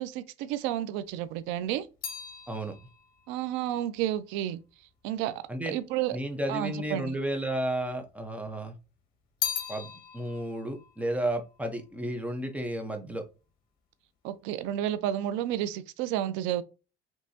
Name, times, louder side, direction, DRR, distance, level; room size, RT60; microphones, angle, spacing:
voice 1, 0.0-1.9 3.3-4.6 5.0-6.2 6.5-7.2 14.2-16.6, right 12 dB, 85° right, 0.6 m, -31 dB
sound 1, 1.0-5.5 6.3-7.1 7.3-8.5 8.8-12.3 12.6-13.1, left 8 dB, 50° left, 1.6 m, -40 dB
voice 2, 6.1-8.7 9.7-9.9 10.1-13.2, right 1 dB, 5° right, 1.0 m, -32 dB
5.4 x 3.0 x 2.8 m
cardioid pair, 130°, 19 cm